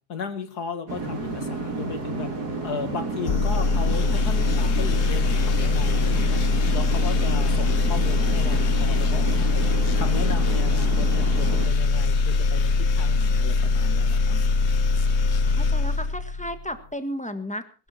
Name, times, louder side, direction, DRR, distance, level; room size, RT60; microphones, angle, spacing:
voice 1, 0.1-2.3 2.6-6.4 6.7-9.7 9.9-14.4, left 5 dB, 65° left, 10 dB, 2.3 m, -35 dB
sound 1, 0.9-11.7, right 3 dB, 65° right, 3.8 m, -31 dB
sound 2, 3.2-16.6, left 4 dB, 50° left, 1.0 m, -22 dB
voice 2, 15.4-17.9, equal, 5° left, 9 dB, 1.5 m, -34 dB
21.5 x 12.0 x 4.4 m, 0.36 s
omnidirectional pair, 1.8 m